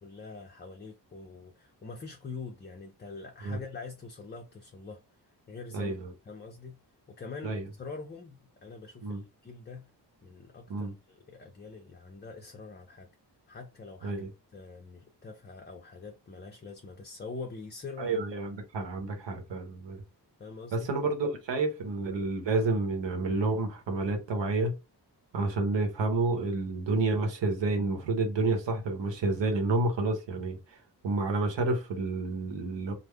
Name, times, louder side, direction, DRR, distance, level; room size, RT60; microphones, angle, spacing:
voice 1, 0.0-5.0 5.5-5.9 6.2-6.8 7.1-9.9 10.2-13.1 13.5-14.2 14.5-18.2 20.4-20.9, left 4 dB, 25° left, 0.4 m, -44 dB
voice 2, 5.7-6.1 7.4-7.6 9.0-9.2 10.7-10.9 14.0-14.3 18.0-20.0 20.7-24.7 25.3-30.6 31.0-32.9, right 3 dB, 90° right, 0.9 m, -29 dB
3.3 x 2.0 x 3.5 m
wide cardioid pair, 140°, 42 cm